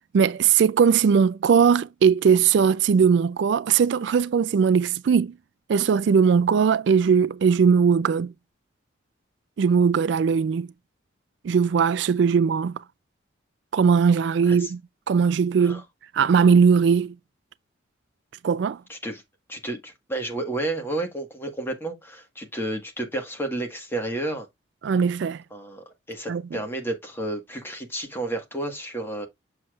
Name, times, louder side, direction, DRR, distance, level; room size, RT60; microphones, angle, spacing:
voice 1, 0.1-5.3 5.7-8.3 9.6-10.7 11.4-12.8 13.7-14.8 15.1-15.8 16.1-17.1 18.4-18.8 24.8-25.4 26.3-26.4, right 6 dB, 65° right, 0.3 m, -19 dB
voice 2, 18.9-19.2 19.5-24.5 25.5-29.3, right 2 dB, 10° left, 1.5 m, -31 dB
7.1 x 6.5 x 2.4 m
head